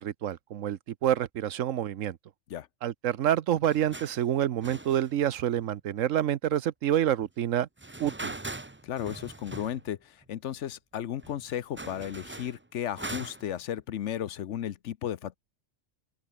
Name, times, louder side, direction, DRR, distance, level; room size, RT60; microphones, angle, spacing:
voice 1, 0.0-2.2 2.8-7.7 8.0-8.4, right 11 dB, 85° right, 1.2 m, -28 dB
sound 1, 3.7-4.3 4.6-5.6 7.8-9.9 10.2-10.3 10.9-11.0 11.2-13.6, right 2 dB, 15° right, 0.5 m, -41 dB
voice 2, 8.8-15.4, left 10 dB, 70° left, 1.1 m, -34 dB
open air
omnidirectional pair, 1.3 m